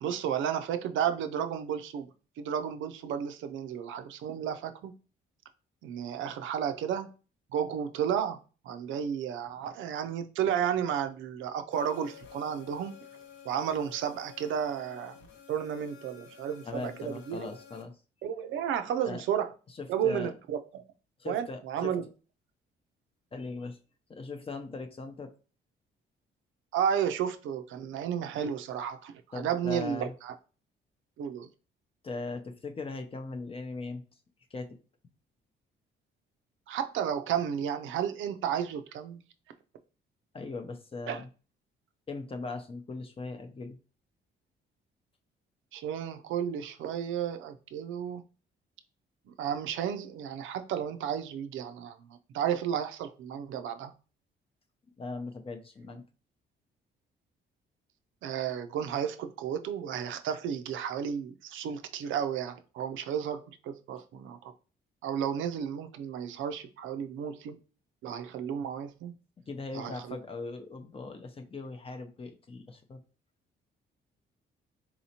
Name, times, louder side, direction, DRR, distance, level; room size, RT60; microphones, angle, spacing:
voice 1, 0.0-2.1 2.4-4.9 5.8-7.1 7.5-8.4 8.6-13.0 13.4-15.2 15.5-17.5 18.2-19.5 19.9-20.8 21.3-22.0 26.7-30.3 31.2-31.5 36.7-39.2 41.1-41.2 45.7-48.2 49.3-53.9 58.2-64.5 65.0-67.6 68.0-69.1 69.7-70.2, right 8 dB, 80° right, 0.5 m, -32 dB
sound 1, 11.7-17.8, left 7 dB, 70° left, 0.8 m, -52 dB
voice 2, 16.7-17.9 19.0-19.2 19.8-20.3 21.2-21.9 23.3-23.8 24.1-25.3 29.3-30.1 32.0-34.0 34.5-34.7 40.3-41.3 42.1-43.8 55.0-56.0 69.5-73.0, left 3 dB, 30° left, 0.6 m, -39 dB
4.1 x 2.8 x 2.8 m
cardioid pair, 90°, 20 cm